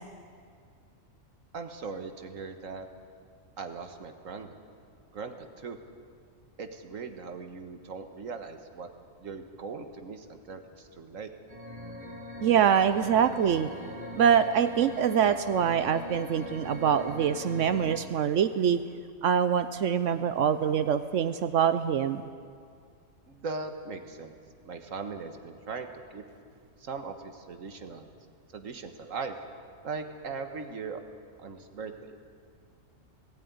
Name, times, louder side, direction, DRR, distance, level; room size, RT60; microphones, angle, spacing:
voice 1, 1.5-2.9 3.6-4.5 5.1-5.8 6.6-8.9 9.2-11.3 23.3-24.4 24.6-26.2 26.8-28.1 28.5-29.4 29.8-31.0 31.4-32.2, right 4 dB, 90° right, 6 dB, 1.8 m, -39 dB
sound 1, 11.5-18.0, equal, 30° right, 2.0 m, -41 dB
voice 2, 12.4-13.7 14.1-18.8 19.2-22.2, right 8 dB, 75° right, 11 dB, 1.0 m, -24 dB
19.0 x 16.5 x 9.5 m, 2.2 s
omnidirectional pair, 1.3 m